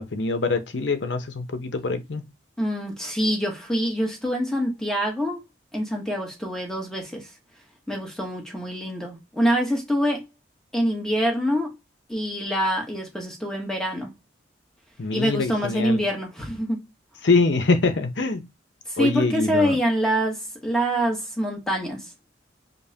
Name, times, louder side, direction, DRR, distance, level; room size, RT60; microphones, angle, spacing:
voice 1, 0.0-2.2 15.0-16.0 17.2-18.5 19.0-19.8, left 3 dB, 65° left, 0.7 m, -24 dB
voice 2, 2.6-5.4 5.7-7.3 7.9-10.3 10.7-11.7 12.1-14.1 15.1-16.8 18.9-22.1, equal, 5° left, 1.0 m, -25 dB
5.3 x 2.1 x 2.8 m
head